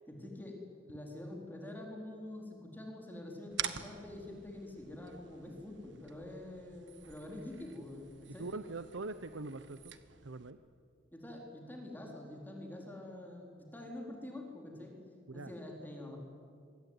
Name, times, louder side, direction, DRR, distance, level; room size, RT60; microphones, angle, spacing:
voice 1, 0.1-8.5 11.1-14.9 15.3-16.2, left 1 dB, 10° left, 0 dB, 4.0 m, -46 dB
sound 1, 3.5-10.5, right 9 dB, 70° right, 1.6 m, -47 dB
voice 2, 8.4-9.9 10.2-10.6 15.3-15.5, right 3 dB, 90° right, 11 dB, 0.9 m, -42 dB
26.5 x 23.0 x 9.7 m, 2.3 s
head